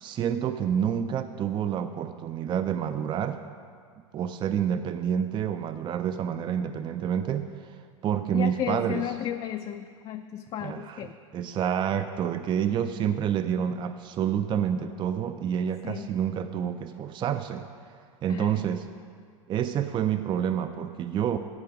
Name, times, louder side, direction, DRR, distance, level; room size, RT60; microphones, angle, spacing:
voice 1, 0.0-3.4 4.1-7.5 8.0-9.1 10.6-11.0 11.3-17.6 18.2-18.9 19.5-21.4, right 9 dB, 30° right, 10 dB, 0.4 m, -28 dB
voice 2, 8.3-11.1 15.8-16.1 18.3-18.6, left 10 dB, 35° left, 6 dB, 0.4 m, -34 dB
14.5 x 5.1 x 5.0 m, 2.1 s
hypercardioid pair, 90°, 17 cm